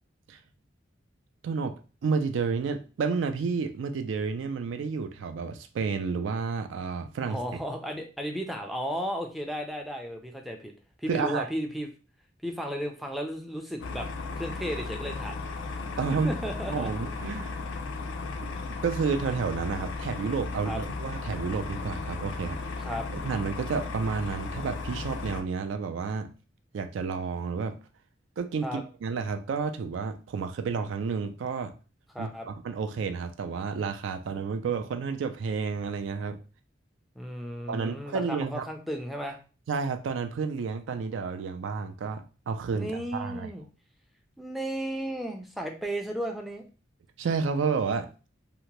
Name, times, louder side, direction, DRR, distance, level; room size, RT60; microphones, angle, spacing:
voice 1, 1.4-1.7 2.0-7.6 11.1-11.5 16.0-16.3 16.7-17.6 18.4-18.5 18.8-22.7 23.2-26.3 26.7-27.8 28.4-31.7 32.2-36.4 37.7-38.7 39.7-43.5 47.2-48.1, right 5 dB, 75° right, 7 dB, 0.3 m, -30 dB
voice 2, 7.2-10.7 11.0-11.9 12.4-14.1 14.3-15.4 16.1-16.9 20.6-20.8 22.8-23.1 28.6-28.8 32.1-32.5 37.2-39.4 42.7-43.6 44.4-46.6, equal, ahead, 2 dB, 0.4 m, -34 dB
sound 1, 13.8-25.4, left 3 dB, 75° left, 0.4 m, -35 dB
2.8 x 2.1 x 2.9 m, 0.35 s
head